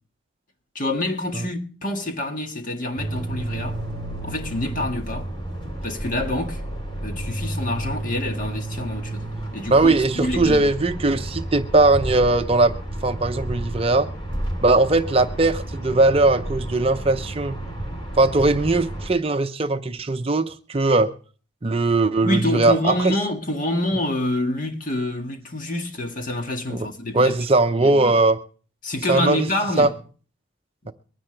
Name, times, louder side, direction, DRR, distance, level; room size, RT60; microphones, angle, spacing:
voice 1, 0.7-3.8 4.2-5.3 5.8-6.6 7.0-10.7 22.2-27.4 27.7-28.2 28.8-29.9 30.8-30.9, left 1 dB, 45° left, 1.8 m, -27 dB
sound 1, 3.0-19.1, right 1 dB, 25° left, 3.5 m, -31 dB
voice 2, 9.7-12.7 13.0-14.1 14.6-17.6 18.2-21.1 21.6-23.1 26.7-26.9 27.1-28.4 29.1-29.5 29.8-29.9 30.9-31.0, right 2 dB, 30° right, 0.6 m, -19 dB
23.5 x 10.0 x 3.3 m
head